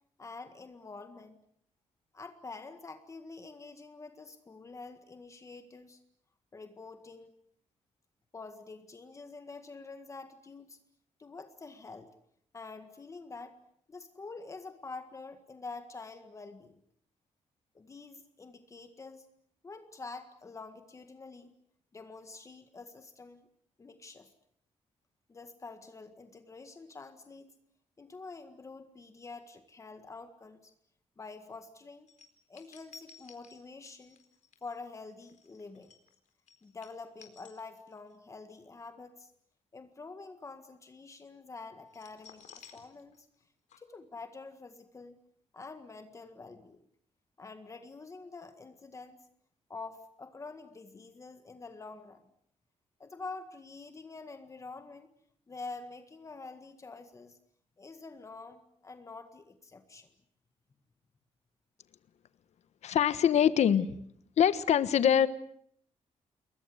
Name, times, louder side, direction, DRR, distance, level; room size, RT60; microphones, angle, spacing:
voice 1, 0.2-1.4 2.1-6.0 6.5-7.3 8.3-10.8 11.2-12.1 12.5-13.5 13.9-16.8 17.7-19.3 19.6-21.5 21.9-23.5 23.8-24.3 25.3-27.5 28.0-30.7 31.2-32.1 32.5-34.2 34.6-35.9 36.6-39.3 39.7-42.4 42.7-43.3 43.8-45.2 45.5-46.8 47.4-49.2 49.7-52.2 53.0-55.1 55.5-57.4 57.8-60.1, left 3 dB, 25° left, 8 dB, 1.8 m, -47 dB
sound 1, 32.1-38.2 38.5-38.7 41.9-43.4 43.7-43.8, left 6 dB, 90° left, 4.2 m, -56 dB
voice 2, 62.8-63.9 64.4-65.3, left 9 dB, 70° left, 13 dB, 1.3 m, -24 dB
29.0 x 22.0 x 8.0 m, 0.67 s
wide cardioid pair, 155°, 12 cm